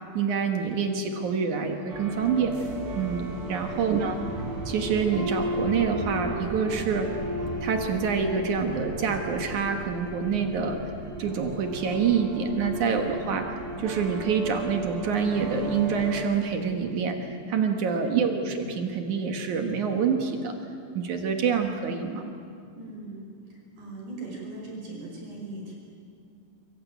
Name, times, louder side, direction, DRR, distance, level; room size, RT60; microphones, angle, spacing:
voice 1, 0.1-2.6 3.0-4.2 4.7-7.1 7.6-10.8 11.2-20.6 20.9-22.3, right 6 dB, 75° right, 4 dB, 1.8 m, -27 dB
sound 1, 1.9-16.2, right 1 dB, 55° right, 6.9 m, -34 dB
voice 2, 3.9-4.4 18.2-18.6 22.7-23.3 23.8-25.7, right 2 dB, 40° right, -1 dB, 6.8 m, -39 dB
23.5 x 23.0 x 9.4 m, 2.4 s
omnidirectional pair, 5.8 m